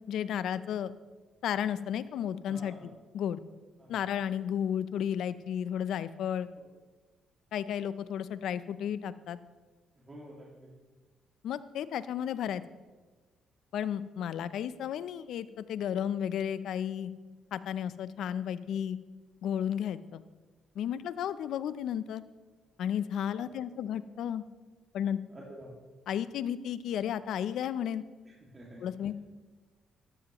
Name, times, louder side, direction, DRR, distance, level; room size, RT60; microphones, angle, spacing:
voice 1, 0.1-0.9 1.4-2.7 3.1-3.4 3.9-6.5 7.5-9.4 11.4-12.6 13.7-17.1 17.5-19.0 19.4-20.2 20.8-22.2 22.8-24.4 24.9-25.2 26.1-28.0 28.8-29.1, left 9 dB, 75° left, 15 dB, 0.5 m, -33 dB
voice 2, 2.5-2.9 3.8-3.9 10.1-10.7 23.4-23.6 25.3-25.7 28.5-28.8, right 1 dB, 25° right, -4 dB, 2.1 m, -48 dB
13.0 x 12.5 x 3.0 m, 1.3 s
cardioid pair, 90°, 0 cm